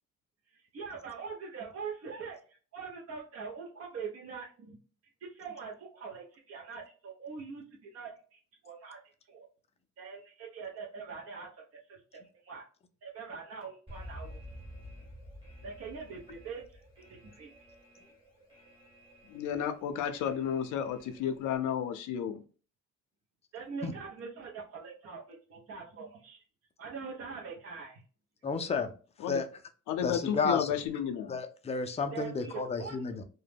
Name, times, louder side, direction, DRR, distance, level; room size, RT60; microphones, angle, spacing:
voice 1, 0.5-4.8 5.2-9.5 10.0-12.6 13.0-14.4 15.6-17.7 23.5-26.4 26.8-28.0 32.1-33.0, right 5 dB, 55° right, -2 dB, 0.7 m, -43 dB
Alarm, 13.9-21.6, equal, 20° right, 1.2 m, -51 dB
voice 2, 19.3-22.4 29.2-29.4 29.9-31.3, left 9 dB, 80° left, 8 dB, 0.5 m, -32 dB
voice 3, 28.4-28.9 29.3-29.5 30.0-30.7 31.3-33.2, left 4 dB, 20° left, 7 dB, 0.4 m, -31 dB
2.2 x 2.1 x 3.3 m, 0.39 s
cardioid pair, 90°, 30 cm